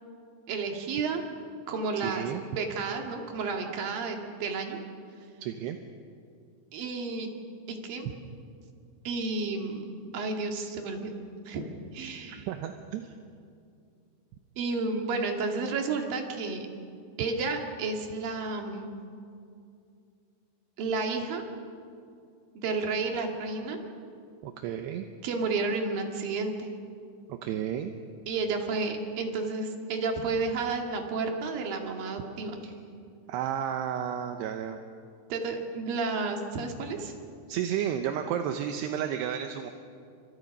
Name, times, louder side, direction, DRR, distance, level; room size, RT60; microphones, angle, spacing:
voice 1, 0.5-1.2 1.7-2.2 2.5-4.8 6.7-7.3 7.7-8.1 9.1-9.8 10.1-11.1 11.5-12.5 14.6-16.7 17.2-19.0 20.8-21.4 22.6-23.8 25.2-26.7 28.3-32.6 35.3-37.1, right 4 dB, 55° right, 3 dB, 3.5 m, -31 dB
voice 2, 2.0-2.4 5.4-5.8 8.1-8.2 12.3-13.1 24.4-25.1 27.3-27.9 32.6-32.7 33.3-34.8 37.5-39.7, right 9 dB, 75° right, 6 dB, 2.7 m, -32 dB
29.5 x 25.5 x 5.4 m, 2.4 s
omnidirectional pair, 5.5 m